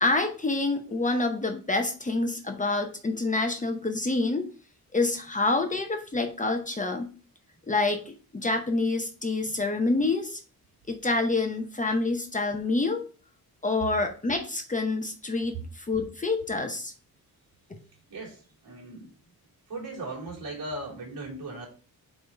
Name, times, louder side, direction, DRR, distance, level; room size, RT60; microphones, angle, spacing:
voice 1, 0.0-4.5 4.9-7.1 7.7-10.4 10.9-13.0 13.6-16.9, left 3 dB, 20° left, 5 dB, 0.7 m, -27 dB
voice 2, 18.1-19.1 19.7-21.7, right 2 dB, 70° right, -3 dB, 3.0 m, -38 dB
4.7 x 4.2 x 5.1 m, 0.38 s
wide cardioid pair, 135°, 36 cm